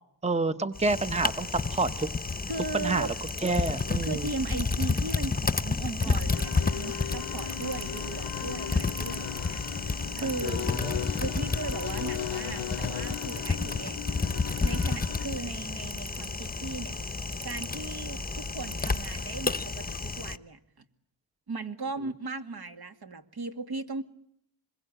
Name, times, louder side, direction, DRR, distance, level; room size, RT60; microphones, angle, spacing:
voice 1, 0.2-2.1 2.7-3.1 3.4-4.3 6.1-6.2 10.4-10.9, right 3 dB, 15° right, 11 dB, 1.0 m, -28 dB
Typing, 0.7-20.4, left 4 dB, 20° left, 1.0 m, -31 dB
voice 2, 2.5-3.2 4.0-9.6 10.2-10.7 11.2-14.2 14.6-17.0 17.4-20.6 21.5-24.0, right 3 dB, 60° right, 7 dB, 2.3 m, -37 dB
Camera, 3.0-19.6, right 2 dB, 40° right, 4.3 m, -47 dB
sound 1, 6.3-15.3, left 11 dB, 85° left, 1.0 m, -37 dB
26.5 x 22.0 x 9.0 m, 0.74 s
cardioid pair, 80°, 44 cm